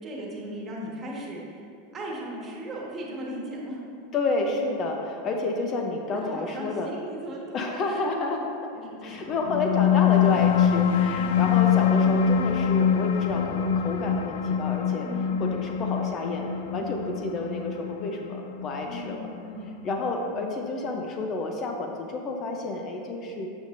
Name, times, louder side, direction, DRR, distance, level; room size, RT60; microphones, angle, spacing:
voice 1, 0.0-1.6 1.9-3.8 6.1-8.4 8.7-9.4 11.1-11.5 15.0-15.4 18.8-19.7, right 1 dB, 30° right, -3 dB, 1.6 m, -37 dB
voice 2, 4.1-6.9 7.5-8.4 9.0-15.1 15.4-19.3 19.8-23.5, left 2 dB, 40° left, 2 dB, 0.7 m, -30 dB
sound 1, 9.3-20.3, left 8 dB, 70° left, 0.3 m, -24 dB
7.8 x 7.0 x 2.6 m, 2.5 s
hypercardioid pair, 110°, 0 cm